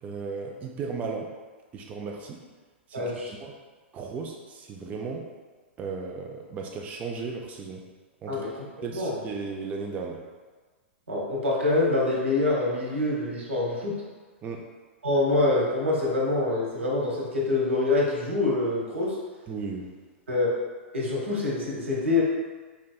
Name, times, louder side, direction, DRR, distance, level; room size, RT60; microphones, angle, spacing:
voice 1, 0.0-1.3 1.7-2.4 2.9-3.5 3.9-5.3 5.8-7.8 8.2-8.4 8.8-10.2 14.4-14.6 19.5-19.9, right 4 dB, 25° right, 0 dB, 0.4 m, -35 dB
voice 2, 2.9-3.3 8.3-8.6 8.9-9.2 11.1-13.9 15.0-19.2 20.3-20.5 20.9-22.2, left 2 dB, 90° right, -3 dB, 0.9 m, -25 dB
4.4 x 2.6 x 2.2 m, 1.4 s
hypercardioid pair, 115°, 6 cm